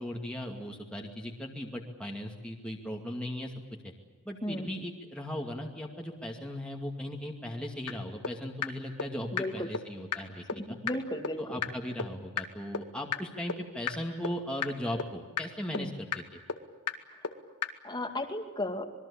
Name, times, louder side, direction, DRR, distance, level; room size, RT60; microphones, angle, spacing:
voice 1, 0.0-3.5 3.8-3.9 4.2-10.8 11.4-16.4, left 1 dB, 5° left, 0 dB, 2.4 m, -38 dB
sound 1, 7.9-8.0 8.2-8.3 8.6-8.7 9.0-9.1 9.4-9.5 9.7-9.8 10.1-10.2 10.5-10.6 10.9-11.0 11.2-11.3 11.6-11.7 12.0-12.1 12.4-12.5 12.7-12.8 13.1-13.2 13.5-13.6 13.9-14.0 14.2-14.3 14.6-14.7 15.0-15.1 15.4-15.5 15.7-15.8 16.1-16.2 16.5-16.6 16.9-17.0 17.2-17.3 17.6-17.7, left 6 dB, 85° left, 2.1 m, -31 dB
voice 2, 9.3-9.7 10.6-11.6 15.7-15.9 17.8-18.8, left 1 dB, 20° left, 5 dB, 2.2 m, -34 dB
26.5 x 22.0 x 8.6 m, 1.3 s
head